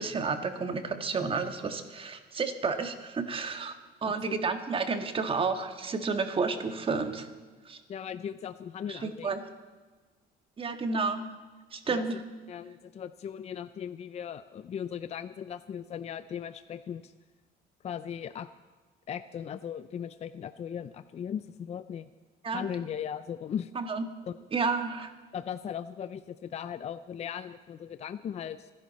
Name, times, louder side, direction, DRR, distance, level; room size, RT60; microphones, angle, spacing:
voice 1, 0.0-3.7 4.0-7.3 7.6-7.8 8.9-9.4 10.6-11.3 11.7-12.1 22.4-22.7 23.7-24.0 24.5-25.1, right 4 dB, 30° right, 7 dB, 1.6 m, -31 dB
voice 2, 4.0-4.4 7.9-9.3 11.9-12.0 12.5-17.1 17.8-18.5 19.1-22.1 22.5-23.7 24.3-24.4 25.3-28.7, left 8 dB, 40° left, 12 dB, 0.5 m, -38 dB
26.5 x 11.0 x 4.2 m, 1.4 s
cardioid pair, 110°, 17 cm